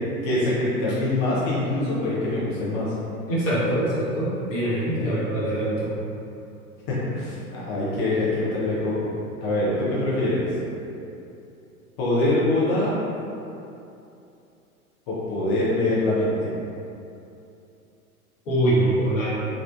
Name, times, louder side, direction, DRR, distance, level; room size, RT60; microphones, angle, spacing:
voice 1, 0.2-2.9 5.0-5.2 6.9-8.9 9.4-10.4 12.0-12.9 15.1-16.5, left 2 dB, 25° left, -8 dB, 0.5 m, -24 dB
voice 2, 3.3-5.9 18.5-19.3, right 1 dB, 60° left, -9 dB, 1.2 m, -23 dB
3.2 x 2.4 x 2.4 m, 2.7 s
figure-of-eight pair, 95°, 44 cm